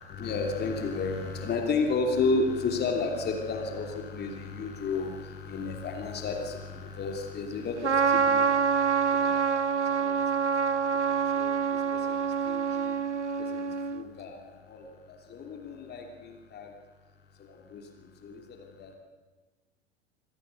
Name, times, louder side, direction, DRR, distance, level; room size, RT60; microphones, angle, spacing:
voice 1, 0.0-13.0 13.4-16.7 17.3-19.0, left 4 dB, 30° left, 3 dB, 3.1 m, -33 dB
Trumpet, 7.8-14.0, right 6 dB, 85° right, 1.0 m, -26 dB
26.5 x 18.0 x 6.6 m, 1.3 s
figure-of-eight pair, 90°, 34 cm